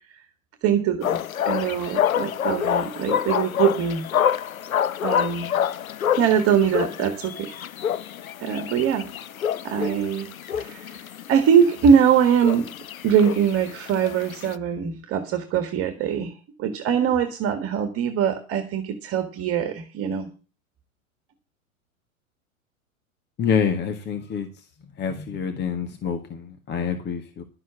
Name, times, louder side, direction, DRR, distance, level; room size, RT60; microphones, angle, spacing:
voice 1, 0.6-4.1 5.0-5.5 6.2-7.5 8.4-9.1 9.6-11.0 11.3-12.7 13.0-16.3 16.6-20.3, right 8 dB, 35° right, 8 dB, 1.9 m, -22 dB
sound 1, 1.0-14.6, left 9 dB, 80° left, 0.6 m, -27 dB
voice 2, 23.4-24.5 25.0-27.4, left 7 dB, 25° left, 8 dB, 1.7 m, -26 dB
12.0 x 7.4 x 6.9 m, 0.34 s
figure-of-eight pair, 95°, 41 cm